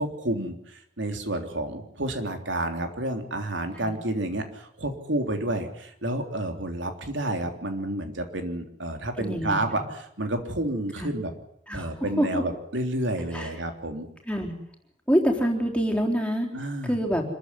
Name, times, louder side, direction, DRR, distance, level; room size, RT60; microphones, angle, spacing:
voice 1, 0.0-11.3 11.7-14.1 16.5-16.9, right 1 dB, 85° right, 5 dB, 3.5 m, -30 dB
voice 2, 9.2-9.6 11.0-11.1 11.7-12.4 13.3-13.5 14.3-14.5 15.1-16.5 16.8-17.2, equal, 5° left, 1 dB, 3.9 m, -26 dB
26.0 x 14.5 x 9.8 m, 0.73 s
head